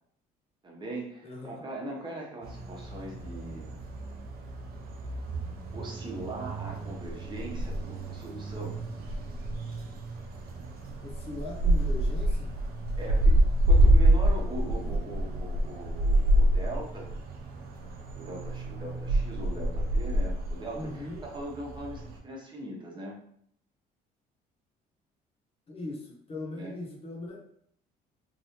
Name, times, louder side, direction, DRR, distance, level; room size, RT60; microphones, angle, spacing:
voice 1, 0.6-3.8 5.7-8.8 13.0-13.4 13.6-17.1 18.1-23.2 26.5-26.7, right 2 dB, 25° right, -1 dB, 0.9 m, -40 dB
voice 2, 1.2-1.6 11.0-12.5 20.7-21.2 25.7-27.4, left 2 dB, 35° left, -1 dB, 1.0 m, -39 dB
sound 1, 2.4-22.2, right 1 dB, 65° right, 0.7 m, -28 dB
3.0 x 2.7 x 2.9 m, 0.69 s
cardioid pair, 110°, 17 cm